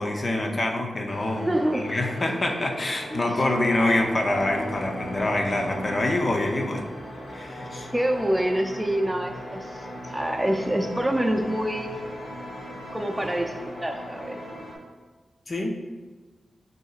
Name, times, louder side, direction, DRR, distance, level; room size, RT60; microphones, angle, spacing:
voice 1, 0.0-6.9 7.3-7.9 15.5-15.7, left 1 dB, 50° left, 2 dB, 0.6 m, -26 dB
sound 1, 1.1-14.7, equal, 85° left, 1.0 m, -37 dB
voice 2, 1.5-1.9 3.1-3.2 7.9-9.9 10.1-11.9 12.9-14.4, right 1 dB, 15° right, 3 dB, 0.5 m, -26 dB
6.2 x 2.7 x 2.4 m, 1.3 s
cardioid pair, 40°, 0 cm